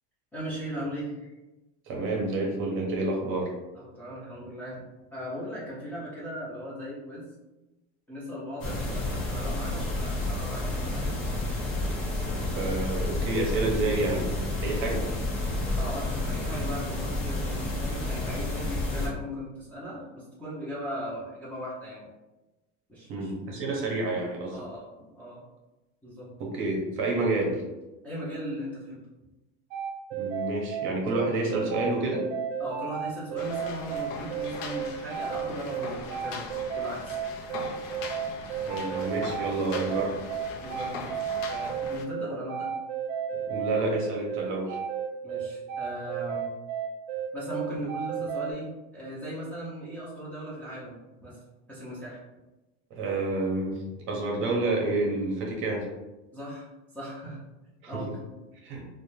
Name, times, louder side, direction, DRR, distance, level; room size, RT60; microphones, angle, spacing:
voice 1, 0.3-1.3 3.7-4.8 5.1-7.3 8.1-11.2 15.8-22.1 22.9-23.3 24.5-24.9 25.1-25.4 26.0-26.3 28.0-29.0 32.6-37.2 40.6-41.2 41.5-42.7 45.2-46.5 47.3-51.4 51.7-52.2 56.3-57.4 57.9-58.3, equal, 5° left, -10 dB, 0.4 m, -38 dB
voice 2, 1.9-3.5 8.9-9.0 12.4-14.3 14.6-15.1 23.1-24.6 26.4-27.6 30.1-32.2 38.5-40.2 43.3-44.8 52.9-55.9 57.8-58.0 58.6-58.8, right 2 dB, 40° right, -1 dB, 0.6 m, -29 dB
sound 1, 8.6-19.1, left 2 dB, 40° left, 0.9 m, -30 dB
sound 2, 29.7-48.5, right 8 dB, 80° right, 0.5 m, -32 dB
sound 3, 33.4-42.0, left 4 dB, 70° left, 0.5 m, -40 dB
2.4 x 2.1 x 3.0 m, 1.1 s
cardioid pair, 155°, 31 cm